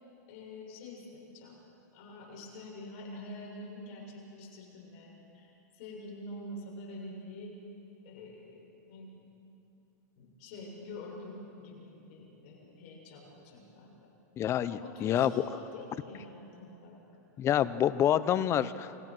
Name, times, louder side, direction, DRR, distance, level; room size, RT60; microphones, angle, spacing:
voice 1, 0.3-1.6 1.9-7.5 8.0-8.6 8.9-9.3 10.2-14.1 14.7-17.0, left 2 dB, 50° left, -2 dB, 7.3 m, -46 dB
voice 2, 14.4-15.3 17.4-18.9, left 10 dB, 30° left, 14 dB, 0.9 m, -27 dB
29.0 x 22.5 x 6.2 m, 2.8 s
supercardioid pair, 135°, 10 cm